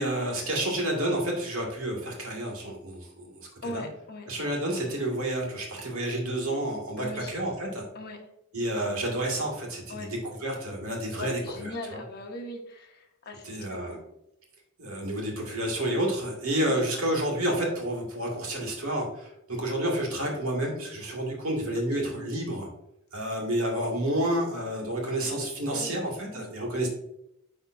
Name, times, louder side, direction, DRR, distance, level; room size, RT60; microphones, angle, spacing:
voice 1, 0.0-3.8 4.3-7.9 8.5-10.0 10.2-12.0 13.4-14.0 14.8-22.7 23.1-26.9, right 1 dB, 70° right, -1 dB, 2.0 m, -30 dB
voice 2, 3.6-4.3 7.0-7.3 7.9-8.2 9.9-10.1 11.2-14.0 16.6-16.8 21.7-22.0 25.7-25.9 26.3-26.5, left 2 dB, 50° left, 1 dB, 1.1 m, -39 dB
10.5 x 3.6 x 2.6 m, 0.81 s
head